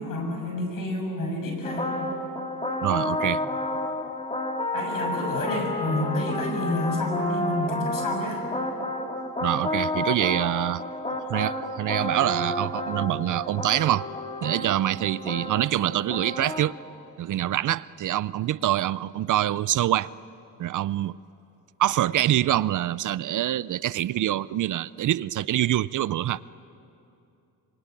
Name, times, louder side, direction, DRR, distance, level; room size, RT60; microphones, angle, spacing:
voice 1, 0.0-1.9 4.7-8.4, left 1 dB, 65° left, 3 dB, 6.7 m, -29 dB
sound 1, 1.6-16.6, left 1 dB, 15° left, 2.1 m, -31 dB
voice 2, 2.8-3.4 9.4-10.8 11.3-14.1 14.4-16.7 17.2-20.1 20.6-21.2 21.8-26.5, right 13 dB, 55° right, 18 dB, 0.5 m, -25 dB
26.0 x 23.5 x 9.2 m, 2.8 s
cardioid pair, 135°, 36 cm